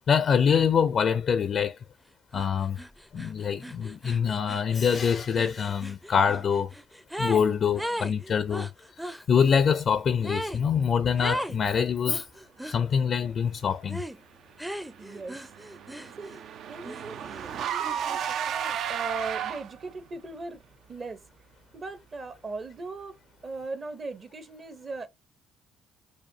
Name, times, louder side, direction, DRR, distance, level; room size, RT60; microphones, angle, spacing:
voice 1, 0.1-1.8 2.3-2.8 3.1-6.7 7.2-8.7 9.0-12.2 12.6-14.0, left 7 dB, 50° left, 0.4 m, -25 dB
sound 1, 2.3-2.5 2.8-7.5 7.8-9.2 10.2-10.6 11.2-11.6 12.1-12.8 13.9-14.2 14.6-16.4 16.8-18.2, equal, 5° right, 0.5 m, -37 dB
Car / Engine, 14.9-19.9, right 9 dB, 65° right, 0.4 m, -33 dB
voice 2, 15.0-15.5 16.2-16.4 16.7-20.6 20.9-21.2 21.7-23.2 23.4-25.1, right 3 dB, 40° right, 0.8 m, -39 dB
4.9 x 2.3 x 2.6 m
supercardioid pair, 75°, 0 cm